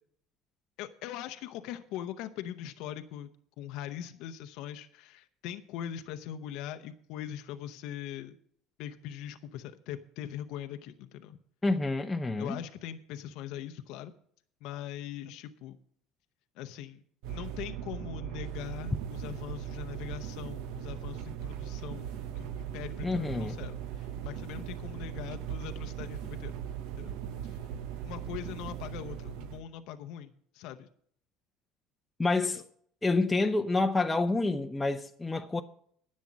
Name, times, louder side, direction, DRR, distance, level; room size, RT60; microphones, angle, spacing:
voice 1, 0.8-3.3 3.6-8.4 8.8-11.4 12.4-14.1 14.6-15.8 16.6-17.0 17.3-26.5 27.0-27.1 27.4-27.6 28.0-30.9 32.5-32.6, left 11 dB, 70° left, 0.7 m, -41 dB
voice 2, 11.6-12.6 23.0-23.6 32.2-32.6 33.0-35.6, left 3 dB, 10° left, 0.6 m, -28 dB
sound 1, 17.2-29.6, right 9 dB, 75° right, 0.9 m, -39 dB
10.5 x 7.3 x 7.3 m
supercardioid pair, 100°, 0 cm